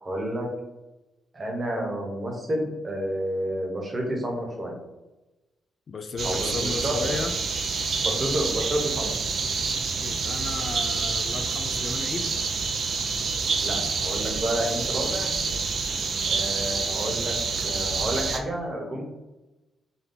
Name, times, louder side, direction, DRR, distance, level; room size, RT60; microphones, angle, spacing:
voice 1, 0.0-0.5 1.3-4.8 6.2-7.1 8.0-9.1 13.6-15.4 16.3-19.0, equal, 30° right, 1 dB, 1.0 m, -30 dB
voice 2, 5.9-7.3 10.0-12.3, left 4 dB, 45° left, 7 dB, 0.3 m, -34 dB
sound 1, 6.2-18.4, right 4 dB, 60° right, 0.4 m, -27 dB
4.1 x 2.2 x 3.9 m, 1.0 s
cardioid pair, 105°, 0 cm